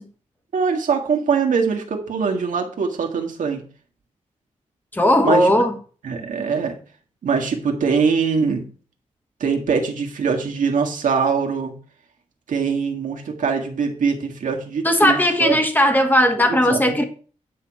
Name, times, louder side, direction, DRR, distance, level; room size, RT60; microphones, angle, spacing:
voice 1, 0.5-3.6 5.2-5.5 6.0-6.8 7.2-8.7 9.4-11.7 12.5-15.6 16.5-17.0, right 5 dB, 85° right, 1.8 m, -22 dB
voice 2, 4.9-5.8 14.8-17.0, left 1 dB, 15° left, 1.5 m, -17 dB
9.4 x 6.1 x 4.8 m
wide cardioid pair, 105°, 13 cm